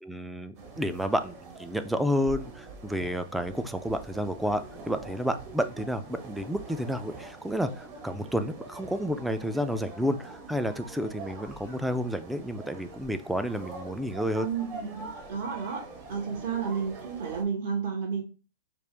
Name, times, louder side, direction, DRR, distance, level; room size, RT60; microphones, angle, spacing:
voice 1, 0.0-14.5, equal, 5° right, 10 dB, 0.4 m, -30 dB
sound 1, 0.5-17.4, right 3 dB, 45° right, 1.3 m, -44 dB
voice 2, 14.4-15.8 16.1-18.2, right 6 dB, 60° right, 1 dB, 1.5 m, -32 dB
5.1 x 2.5 x 3.4 m, 0.33 s
hypercardioid pair, 130°, 0 cm